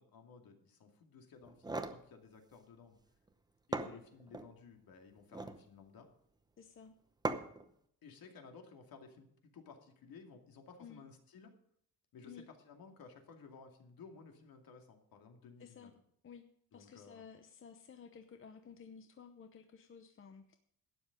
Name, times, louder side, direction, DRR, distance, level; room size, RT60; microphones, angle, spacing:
voice 1, 0.0-3.0 3.7-6.1 8.0-11.5 12.1-15.9 16.7-17.3, left 5 dB, 60° left, 4 dB, 2.5 m, -56 dB
sound 1, 1.4-2.0 3.3-3.4 3.7-4.5 5.2-5.6 7.2-7.7, right 2 dB, 10° right, 0.8 m, -39 dB
voice 2, 6.6-7.0 10.8-11.0 12.2-12.4 15.6-15.9 16.2-16.5 16.7-20.6, left 6 dB, 30° left, 7 dB, 0.9 m, -54 dB
12.5 x 9.8 x 5.2 m, 0.67 s
cardioid pair, 160°, 39 cm